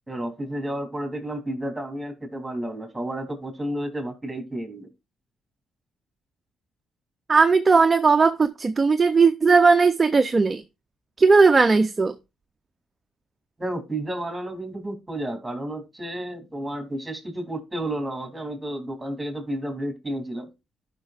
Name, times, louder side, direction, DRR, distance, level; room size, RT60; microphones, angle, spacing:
voice 1, 0.1-4.9 13.6-20.5, right 1 dB, 10° right, 3.0 m, -31 dB
voice 2, 7.3-10.6 11.2-12.1, right 4 dB, 30° right, 0.5 m, -17 dB
13.0 x 5.8 x 2.4 m
cardioid pair, 90°, 0 cm